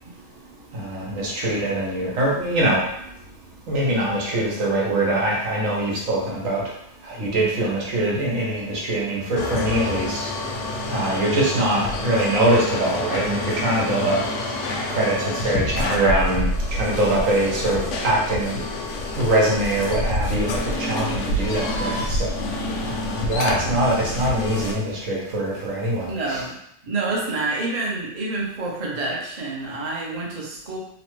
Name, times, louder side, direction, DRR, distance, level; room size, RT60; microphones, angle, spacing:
voice 1, 0.7-2.8 3.7-6.6 7.0-10.2 10.9-14.2 14.9-18.6 19.2-22.4 22.9-26.4, right 1 dB, 85° right, -4 dB, 1.3 m, -23 dB
sound 1, 9.4-24.7, left 1 dB, 70° left, 0.9 m, -28 dB
voice 2, 26.1-26.5 26.8-30.8, right 3 dB, 40° right, -3 dB, 0.6 m, -28 dB
3.0 x 2.2 x 3.0 m, 0.76 s
omnidirectional pair, 1.3 m